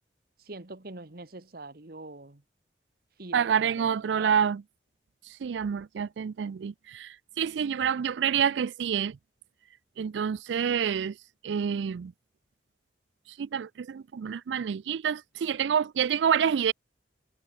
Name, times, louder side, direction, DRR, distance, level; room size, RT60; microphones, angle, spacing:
voice 1, 0.4-2.4 3.2-4.4, right 3 dB, 60° right, 1.5 m, -43 dB
voice 2, 3.3-4.6 5.4-9.2 10.0-11.2 11.4-12.1 13.4-16.7, right 7 dB, 85° right, 0.4 m, -27 dB
head